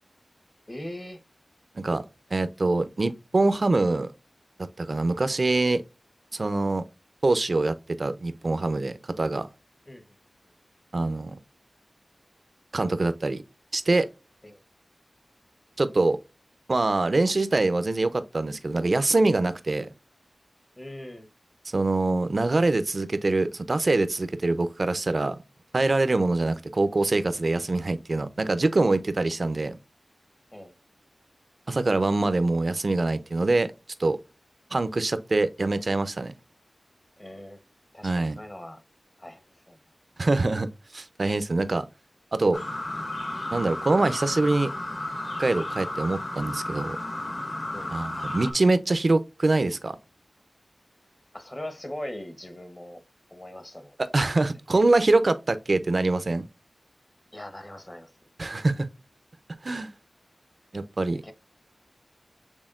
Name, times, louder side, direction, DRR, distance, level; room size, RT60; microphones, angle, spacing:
voice 1, 0.7-1.2 9.9-10.0 14.4-14.6 20.8-21.3 29.2-29.4 30.5-30.7 37.2-37.6 37.9-38.8 39.2-39.8 47.7-47.9 51.3-53.0 53.3-54.3 54.8-54.9 57.3-58.1 61.2-61.3, left 1 dB, 25° left, 0.9 m, -40 dB
voice 2, 2.3-4.1 4.6-5.8 6.3-6.9 7.2-9.5 10.9-11.4 12.7-13.4 13.7-14.1 15.8-16.2 16.7-19.9 21.7-25.4 25.7-29.8 31.7-33.7 34.0-34.2 34.7-36.3 38.0-38.4 40.2-41.8 42.3-42.6 43.5-44.7 45.4-47.0 47.9-50.0 54.1-56.5 58.4-58.9 59.6-59.9 60.7-61.2, right 2 dB, 50° right, 0.5 m, -24 dB
sound 1, 42.5-48.5, left 1 dB, 45° left, 1.1 m, -33 dB
6.3 x 3.5 x 2.4 m
wide cardioid pair, 85°, 0 cm